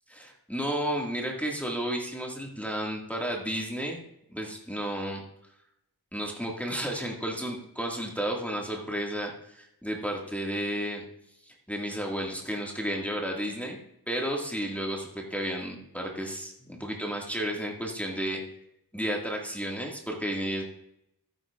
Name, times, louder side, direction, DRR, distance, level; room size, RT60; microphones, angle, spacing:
voice 1, 0.1-4.0 4.3-5.2 6.1-11.0 11.4-13.8 14.1-18.4 18.9-20.6, equal, 5° left, -1 dB, 1.9 m, -32 dB
13.0 x 9.8 x 2.4 m, 0.79 s
wide cardioid pair, 40°, 38 cm